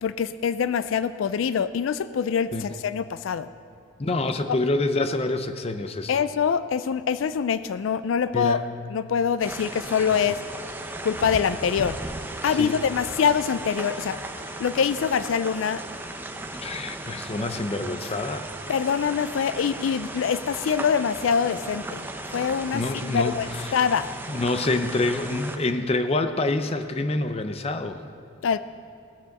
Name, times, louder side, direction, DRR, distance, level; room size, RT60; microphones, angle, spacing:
voice 1, 0.0-3.5 4.5-4.6 6.1-8.6 8.9-10.4 11.0-12.0 12.4-14.2 14.6-15.8 18.7-22.0 22.3-24.1 28.4-28.6, left 7 dB, 80° left, 14 dB, 0.4 m, -24 dB
voice 2, 4.0-6.1 8.3-8.6 12.5-12.8 16.6-18.5 22.7-23.8 24.3-28.0, left 2 dB, 30° left, 9 dB, 0.6 m, -27 dB
sound 1, 9.4-25.6, right 2 dB, 10° right, 0.7 m, -36 dB
18.5 x 6.9 x 6.5 m, 2.3 s
head